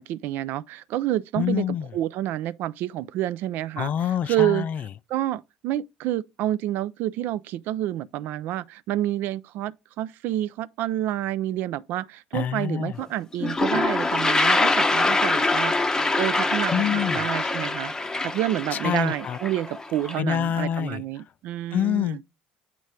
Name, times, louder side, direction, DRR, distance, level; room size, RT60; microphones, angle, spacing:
voice 1, 0.0-3.9 4.3-4.7 5.1-17.9 18.2-22.2, right 13 dB, 60° right, 0.3 m, -28 dB
voice 2, 1.4-1.9 3.8-4.8 12.3-13.0 16.7-17.2 18.7-19.4 20.2-21.0 21.7-22.2, left 9 dB, 45° left, 0.4 m, -26 dB
Toilet flush, 13.0-13.1 13.3-20.2, left 2 dB, 15° left, 0.7 m, -24 dB
8.2 x 3.1 x 5.0 m
hypercardioid pair, 60°, 4 cm